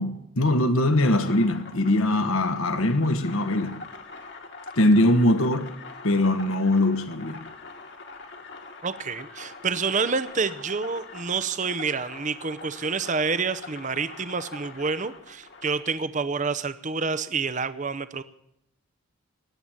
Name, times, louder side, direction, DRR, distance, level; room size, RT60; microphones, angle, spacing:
voice 1, 0.0-3.8 4.8-5.7 6.0-7.4, left 1 dB, 70° left, 1.3 m, -22 dB
sound 1, 0.7-15.9, left 3 dB, 50° left, 1.7 m, -43 dB
voice 2, 8.8-18.2, right 5 dB, 35° right, 0.6 m, -28 dB
19.5 x 7.8 x 8.7 m
head